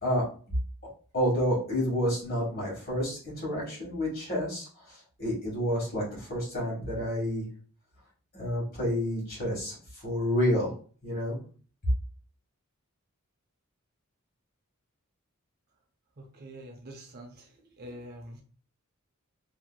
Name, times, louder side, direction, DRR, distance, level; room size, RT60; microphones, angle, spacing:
voice 1, 1.1-7.4 8.3-10.7 11.0-11.4, equal, 40° left, -4 dB, 1.5 m, -29 dB
voice 2, 16.2-18.4, right 1 dB, 45° right, 3 dB, 0.5 m, -46 dB
2.8 x 2.7 x 2.3 m, 0.41 s
head